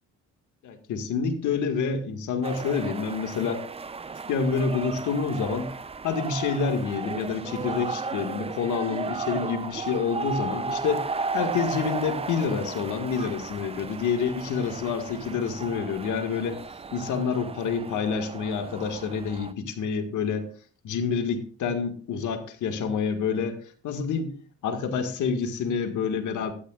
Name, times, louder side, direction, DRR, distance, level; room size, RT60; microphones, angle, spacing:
voice 1, 0.6-3.6 4.3-5.7 6.0-16.6 16.9-20.5 20.8-23.6 23.8-24.3 24.6-26.5, left 6 dB, 80° left, 6 dB, 1.9 m, -28 dB
sound 1, 2.4-19.5, right 4 dB, 20° right, 0.5 m, -35 dB
13.0 x 12.0 x 2.4 m, 0.42 s
cardioid pair, 90°, 30 cm